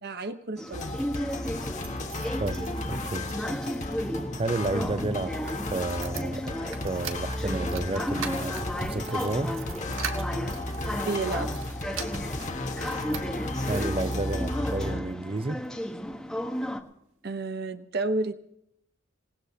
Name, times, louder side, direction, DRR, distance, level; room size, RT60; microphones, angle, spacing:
voice 1, 0.0-1.0 11.0-11.5 17.2-18.3, right 3 dB, 55° right, 0.9 m, -31 dB
sound 1, 0.6-16.8, equal, 5° left, 1.2 m, -35 dB
sound 2, 0.7-15.0, left 2 dB, 40° left, 1.4 m, -33 dB
sound 3, 0.8-14.8 15.4-16.2 16.5-16.6 16.9-17.0, right 6 dB, 85° right, 1.6 m, -44 dB
voice 2, 2.4-3.4 4.3-5.4 5.7-9.6 13.6-15.7, right 2 dB, 30° right, 0.6 m, -31 dB
27.5 x 18.5 x 2.8 m
head